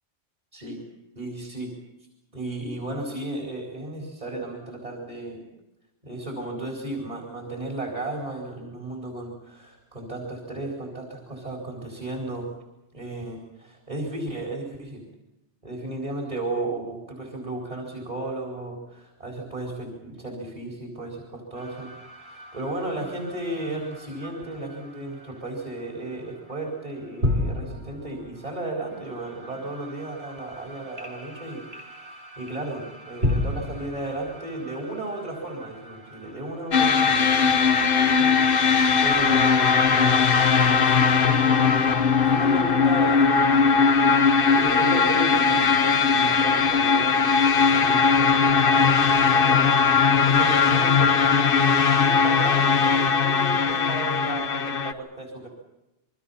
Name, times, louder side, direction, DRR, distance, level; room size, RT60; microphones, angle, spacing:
voice 1, 0.5-0.8 1.1-1.7 2.3-5.4 6.0-12.6 12.9-15.1 15.6-39.9 40.4-41.7 42.2-44.1 44.4-49.8 50.2-55.5, right 2 dB, 35° right, 0 dB, 4.6 m, -34 dB
sound 1, 21.5-39.9, left 1 dB, 65° right, 3.5 m, -36 dB
sound 2, 36.7-54.9, left 5 dB, 55° left, 1.2 m, -19 dB
27.5 x 24.0 x 5.7 m, 0.92 s
omnidirectional pair, 1.1 m